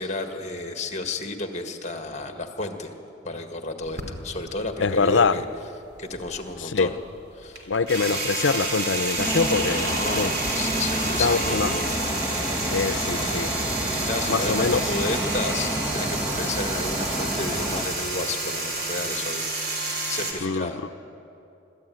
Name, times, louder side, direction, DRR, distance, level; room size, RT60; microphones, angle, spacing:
voice 1, 0.0-2.9 3.2-5.4 6.0-7.0 7.3-7.7 9.8-11.8 13.8-19.5 20.1-20.8, left 2 dB, 35° left, 5 dB, 1.7 m, -32 dB
sound 1, 3.8-5.6 5.9-20.3, right 2 dB, 55° right, 3.3 m, -29 dB
voice 2, 4.8-5.4 6.6-6.9 7.7-10.3 11.2-11.7 12.7-13.5 14.3-14.8 20.4-20.7, left 4 dB, 80° left, 13 dB, 0.7 m, -24 dB
sound 2, 9.2-17.9, equal, 10° right, 1.6 m, -30 dB
24.0 x 13.5 x 9.2 m, 2.9 s
head